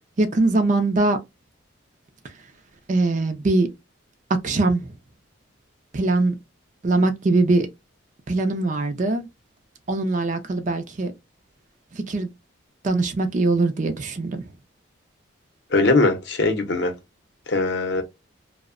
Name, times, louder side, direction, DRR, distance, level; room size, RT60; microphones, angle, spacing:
voice 1, 0.2-1.2 2.2-2.5 2.9-3.7 4.4-5.0 5.9-6.4 6.8-7.7 8.3-9.3 9.9-11.1 11.9-12.3 12.8-14.5, right 2 dB, 40° right, 0.4 m, -22 dB
voice 2, 15.7-16.9 17.5-18.0, left 2 dB, 55° left, 0.6 m, -20 dB
2.7 x 2.0 x 2.4 m
head